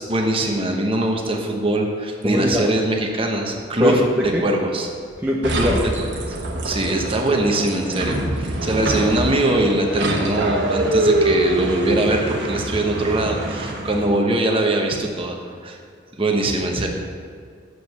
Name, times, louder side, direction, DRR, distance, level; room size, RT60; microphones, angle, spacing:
voice 1, 0.0-4.0 4.4-4.9 5.5-5.7 6.3-6.4 6.6-15.4 15.6-15.8 16.2-16.9, right 1 dB, 30° right, 2 dB, 1.0 m, -22 dB
voice 2, 2.2-2.6 3.8-4.5 5.2-6.0 6.9-7.0 7.2-7.3, left 1 dB, 10° right, -3 dB, 0.6 m, -21 dB
sound 1, 5.4-14.2, right 1 dB, 65° right, 1.3 m, -24 dB
7.8 x 5.0 x 6.8 m, 2.2 s
head